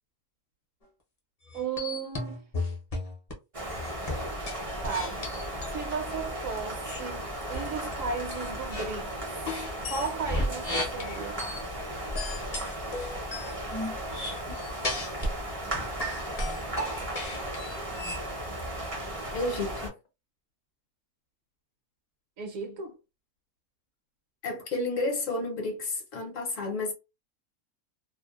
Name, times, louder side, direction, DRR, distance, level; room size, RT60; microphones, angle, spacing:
sound 1, 1.5-3.3 3.7-5.8 6.8-7.0 7.5-7.9 8.3-8.9 9.5-11.6 12.1-15.4 15.7-18.2, left 1 dB, 35° left, 0.6 m, -34 dB
voice 1, 1.5-2.5 4.8-5.3 5.7-9.2 9.9-11.5 22.4-23.0, right 5 dB, 65° right, 1.0 m, -35 dB
sound 2, 3.5-19.9, right 1 dB, 35° right, 0.6 m, -36 dB
voice 2, 19.3-19.9 24.4-26.9, left 2 dB, 60° left, 1.1 m, -31 dB
2.7 x 2.1 x 2.3 m
omnidirectional pair, 1.6 m